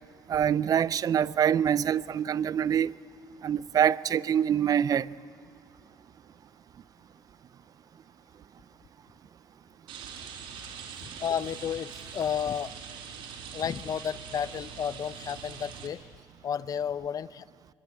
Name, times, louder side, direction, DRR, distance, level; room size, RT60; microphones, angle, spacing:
voice 1, 0.3-3.0 3.4-5.1, right 9 dB, 45° right, 0.5 m, -25 dB
Rain, 9.9-15.9, right 7 dB, 80° right, 4.7 m, -43 dB
voice 2, 11.0-12.7 13.5-16.0 16.4-17.5, left 8 dB, 45° left, 0.6 m, -32 dB
23.5 x 22.5 x 9.1 m
cardioid pair, 95°, 9 cm